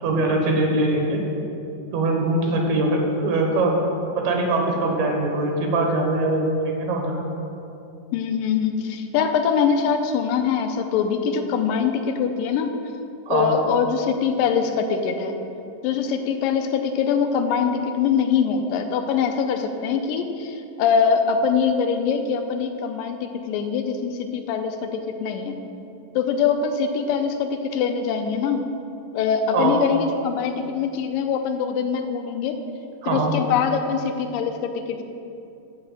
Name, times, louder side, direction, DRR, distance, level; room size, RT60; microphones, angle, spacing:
voice 1, 0.0-1.2 1.9-3.8 4.2-7.1 13.3-13.5 29.5-29.8 33.0-33.3, right 2 dB, 65° right, 1 dB, 2.2 m, -22 dB
voice 2, 8.1-12.8 13.3-15.4 15.8-25.6 26.2-28.7 29.1-32.6 33.1-35.0, left 6 dB, 85° left, 6 dB, 2.2 m, -23 dB
7.6 x 5.5 x 7.3 m, 2.7 s
omnidirectional pair, 4.1 m